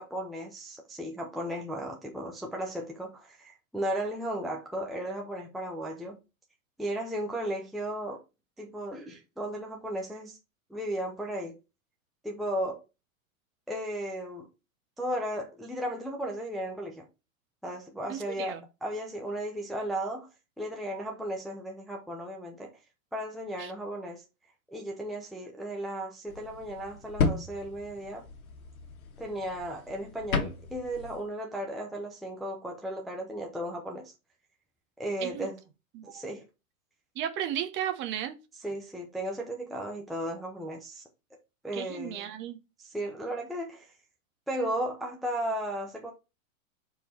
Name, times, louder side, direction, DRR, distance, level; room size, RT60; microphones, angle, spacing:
voice 1, 0.0-6.2 6.8-8.2 8.6-10.4 10.7-11.6 12.2-12.8 13.7-14.5 15.0-17.1 17.6-18.5 18.8-20.3 20.6-22.7 23.1-24.2 24.7-28.2 29.2-34.1 35.0-35.6 36.0-36.4 38.6-41.0 41.6-42.3 42.8-43.9 44.5-46.1, right 1 dB, ahead, 0.6 m, -35 dB
voice 2, 18.1-18.6 23.6-23.7 35.2-35.5 35.9-36.2 37.1-38.4 41.7-42.6, right 10 dB, 30° right, 1.0 m, -34 dB
sound 1, 26.3-31.2, left 4 dB, 80° left, 2.0 m, -34 dB
5.3 x 4.7 x 4.4 m
hypercardioid pair, 140°, 42 cm